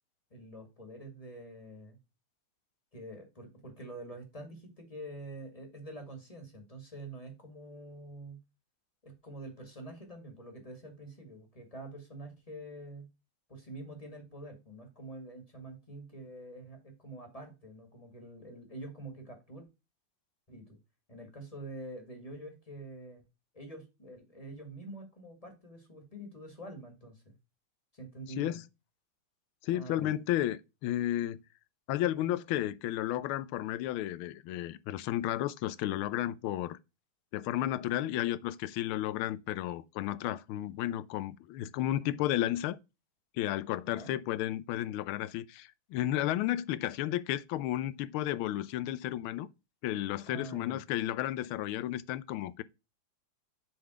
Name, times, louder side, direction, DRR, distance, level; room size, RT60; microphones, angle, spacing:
voice 1, 0.3-2.0 2.9-8.4 9.0-13.1 13.5-19.6 20.5-20.8 21.1-23.2 23.5-27.4 27.9-28.6 29.7-30.1 43.9-44.1 50.3-50.8, right 1 dB, 20° left, 1.7 m, -46 dB
voice 2, 29.6-31.4 31.9-36.8 37.3-42.8 43.4-49.5 49.8-52.6, left 13 dB, 85° left, 1.4 m, -33 dB
7.1 x 3.8 x 4.9 m
omnidirectional pair, 2.3 m